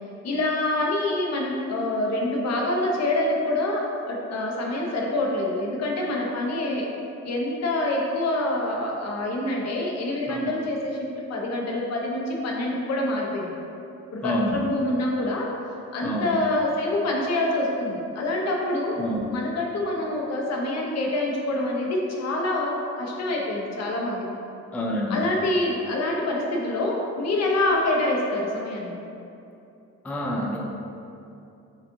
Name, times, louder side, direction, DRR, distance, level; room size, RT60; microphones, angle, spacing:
voice 1, 0.2-6.9 7.2-11.0 11.3-13.5 14.1-15.5 15.9-19.0 19.3-24.2 25.1-29.0, left 1 dB, 60° left, -1 dB, 0.7 m, -26 dB
voice 2, 14.2-14.6 16.0-16.3 19.0-19.3 24.7-25.2 30.0-30.6, left 1 dB, 5° left, -2 dB, 0.3 m, -27 dB
5.3 x 2.5 x 2.6 m, 2.7 s
cardioid pair, 90°, 30 cm